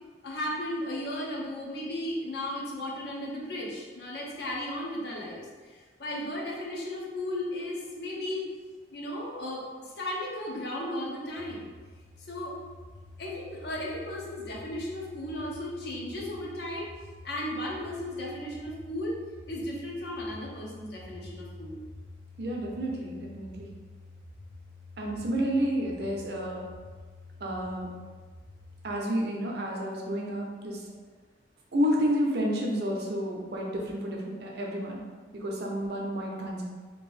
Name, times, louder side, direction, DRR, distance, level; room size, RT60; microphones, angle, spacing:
voice 1, 0.2-8.5 8.9-11.7 12.3-12.6 13.2-16.9 17.2-19.2 19.5-21.8, left 1 dB, 60° left, -3 dB, 0.7 m, -35 dB
sound 1, 11.4-28.9, left 2 dB, 25° left, 0.5 m, -49 dB
voice 2, 22.4-23.7 25.0-26.7 27.4-27.9 28.8-30.8 31.7-35.0 35.3-36.6, equal, 60° right, -1 dB, 0.6 m, -30 dB
2.9 x 2.6 x 3.2 m, 1.4 s
head